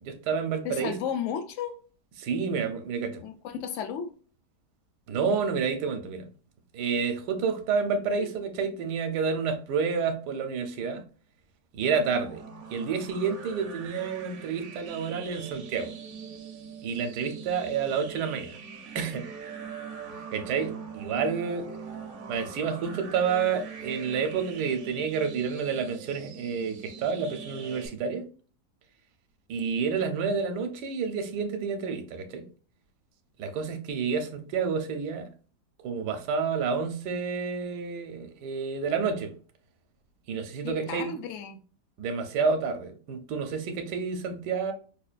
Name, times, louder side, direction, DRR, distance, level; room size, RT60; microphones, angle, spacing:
voice 1, 0.0-1.0 2.2-3.2 5.1-6.3 6.7-11.0 11.7-12.4 12.7-15.9 16.8-18.6 18.9-19.2 20.3-21.7 22.3-28.2 29.5-32.4 33.4-35.3 35.8-39.3 40.3-41.2 42.0-44.7, right 5 dB, 80° right, 1.2 m, -29 dB
voice 2, 0.6-1.8 3.2-4.1 8.2-8.3 40.6-41.6, left 8 dB, 75° left, 0.7 m, -34 dB
sound 1, 11.9-27.9, right 6 dB, 60° right, 0.8 m, -42 dB
5.3 x 2.2 x 2.4 m
omnidirectional pair, 1.8 m